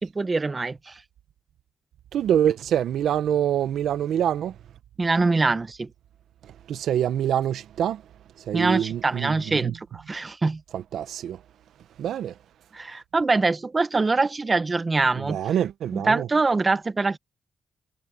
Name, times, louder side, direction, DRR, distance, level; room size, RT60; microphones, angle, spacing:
voice 1, 0.0-1.0 5.0-5.9 8.5-10.6 12.7-15.4 15.9-17.2, right 3 dB, 30° right, 1.0 m, -24 dB
voice 2, 2.1-4.5 6.7-8.0 8.4-9.7 10.7-11.4 12.0-12.3 15.2-16.3, right 10 dB, 85° right, 0.6 m, -25 dB
cardioid pair, 100°, 0 cm